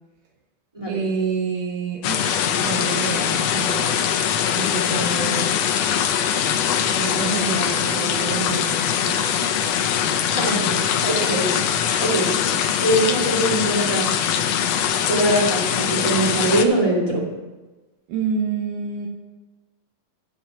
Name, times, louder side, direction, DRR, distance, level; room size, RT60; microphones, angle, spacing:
voice 1, 0.9-4.1 4.6-5.5 7.0-9.3 18.1-19.1, right 5 dB, 80° right, 0 dB, 2.5 m, -28 dB
sound 1, 2.0-16.7, left 9 dB, 80° left, 1.4 m, -22 dB
voice 2, 10.4-10.8 11.0-12.3 12.8-14.1 15.1-17.3, right 1 dB, 15° right, -4 dB, 1.8 m, -22 dB
11.5 x 4.6 x 7.2 m, 1.2 s
omnidirectional pair, 3.8 m